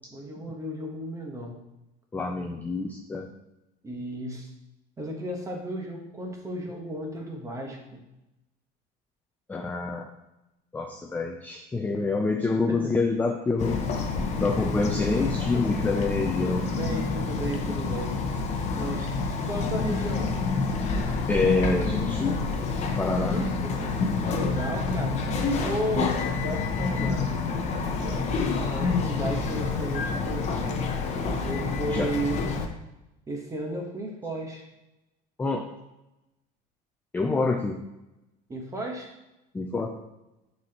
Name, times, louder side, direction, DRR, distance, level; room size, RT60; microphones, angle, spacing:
voice 1, 0.1-1.6 3.8-4.5 5.0-8.0 12.7-12.9 15.6-15.8 16.4-18.2 18.8-19.1 19.4-20.3 23.3-23.9 24.2-25.2 25.6-27.3 27.9-30.8 31.4-32.4 33.3-34.6 38.5-39.1, right 1 dB, 15° right, 1 dB, 1.1 m, -34 dB
voice 2, 2.1-3.3 9.5-10.1 10.7-13.8 14.4-16.6 21.3-22.4 23.0-23.4 31.9-32.1 35.4-35.7 37.1-37.8 39.5-40.0, left 3 dB, 10° left, 3 dB, 0.4 m, -27 dB
Bird vocalization bird call bird song, 13.6-32.7, left 4 dB, 35° left, 0.7 m, -28 dB
9.3 x 4.2 x 2.9 m, 0.94 s
cardioid pair, 160°, 20 cm